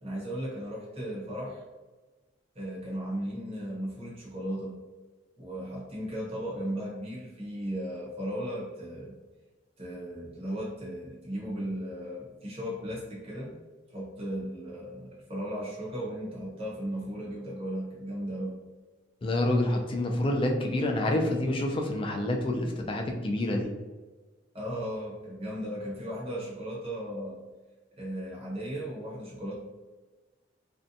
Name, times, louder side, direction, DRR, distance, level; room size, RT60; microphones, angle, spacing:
voice 1, 0.0-1.6 2.5-4.8 5.4-9.2 9.8-13.5 13.9-18.6 24.5-27.4 28.0-29.6, equal, 30° right, -5 dB, 0.7 m, -36 dB
voice 2, 19.2-23.7, left 1 dB, 30° left, 2 dB, 0.3 m, -27 dB
2.6 x 2.2 x 2.6 m, 1.2 s
head